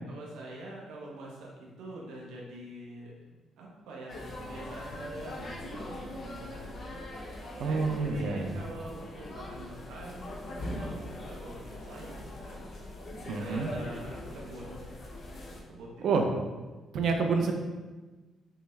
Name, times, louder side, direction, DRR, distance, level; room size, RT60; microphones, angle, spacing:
voice 1, 0.1-6.9 7.6-12.7 13.2-14.9 15.7-16.2, right 1 dB, 90° right, -3 dB, 0.9 m, -45 dB
sound 1, 4.1-15.6, left 1 dB, 50° left, 0.8 m, -41 dB
voice 2, 7.6-8.6 13.2-13.7 16.0-16.3 16.9-17.5, right 4 dB, 70° right, 4 dB, 0.5 m, -28 dB
5.6 x 2.0 x 3.3 m, 1.2 s
cardioid pair, 90°, 0 cm